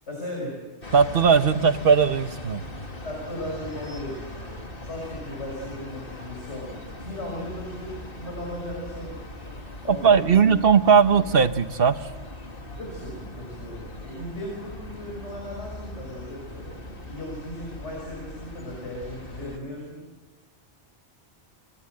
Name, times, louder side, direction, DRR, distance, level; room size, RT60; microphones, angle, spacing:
voice 1, 0.1-0.6 3.0-4.4 4.8-9.2 9.6-10.6 11.1-11.2 12.8-20.0, left 1 dB, 80° left, -1 dB, 6.3 m, -37 dB
sound 1, 0.8-19.6, left 1 dB, 50° left, 3.0 m, -40 dB
voice 2, 0.9-2.6 10.0-12.0, right 6 dB, 55° right, 11 dB, 1.2 m, -18 dB
30.0 x 23.0 x 7.8 m, 1.2 s
omnidirectional pair, 1.2 m